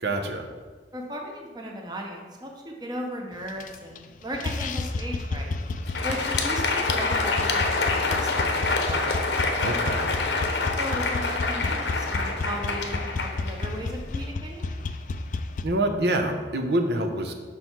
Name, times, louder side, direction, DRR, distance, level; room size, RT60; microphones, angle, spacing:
voice 1, 0.0-0.5 9.6-10.1 15.6-17.3, right 1 dB, 65° right, 4 dB, 0.8 m, -26 dB
voice 2, 0.9-5.5 6.0-9.1 10.7-14.6, equal, 25° right, 1 dB, 0.9 m, -36 dB
sound 1, 3.5-4.1 4.3-15.6, left 3 dB, 45° left, 0.4 m, -31 dB
Crowd, 5.7-14.2, left 3 dB, 75° left, 0.9 m, -27 dB
6.3 x 5.6 x 4.6 m, 1.4 s
head